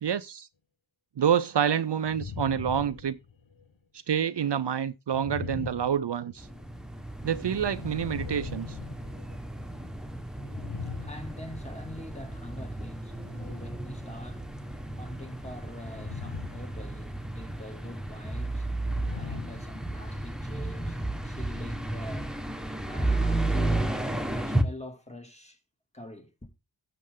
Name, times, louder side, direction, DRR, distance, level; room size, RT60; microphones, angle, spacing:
voice 1, 0.0-0.5 1.2-3.2 4.1-6.5 7.2-8.8, right 8 dB, 65° right, 0.6 m, -27 dB
sound 1, 2.0-3.7 5.1-6.6 7.5-9.7 10.4-11.9 13.1-13.8 15.8-16.8 17.0-17.4 18.8-20.3, left 5 dB, 80° left, 1.2 m, -40 dB
sound 2, 6.4-24.6, right 1 dB, ahead, 1.4 m, -33 dB
voice 2, 10.8-18.8 19.1-22.4 22.8-25.6 25.9-26.5, left 1 dB, 15° left, 2.4 m, -44 dB
12.0 x 6.7 x 3.7 m
wide cardioid pair, 50°, 46 cm